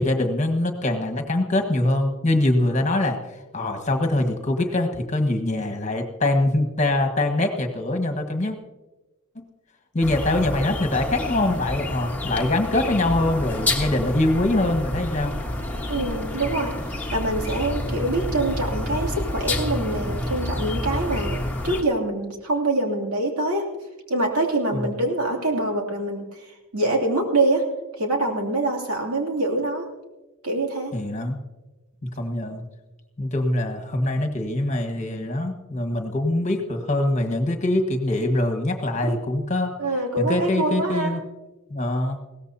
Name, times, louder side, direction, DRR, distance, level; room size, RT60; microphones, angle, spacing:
voice 1, 0.0-8.6 9.3-9.4 9.9-15.3 24.7-24.8 30.9-31.4 32.2-32.6 33.2-39.7 40.2-41.2 41.7-42.2, left 1 dB, 35° left, 4 dB, 1.5 m, -23 dB
sound 1, 10.0-21.8, left 1 dB, 10° left, 1.4 m, -29 dB
voice 2, 15.9-16.7 17.1-23.7 24.1-27.6 27.9-29.8 30.4-30.9 39.1-39.2 39.8-41.1, right 2 dB, 85° right, 0 dB, 2.9 m, -25 dB
21.0 x 17.0 x 2.8 m, 1.1 s
head